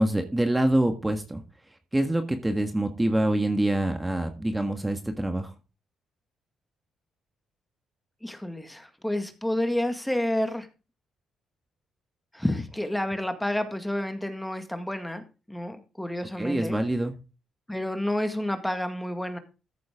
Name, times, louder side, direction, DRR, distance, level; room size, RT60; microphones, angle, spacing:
voice 1, 0.0-1.4 1.9-5.5 16.4-17.1, right 1 dB, 10° right, 6 dB, 1.6 m, -25 dB
voice 2, 8.2-10.7 12.3-15.2 15.5-16.8 17.7-19.4, left 1 dB, 5° left, 8 dB, 1.8 m, -29 dB
14.5 x 7.7 x 3.7 m, 0.31 s
cardioid pair, 90°, 0 cm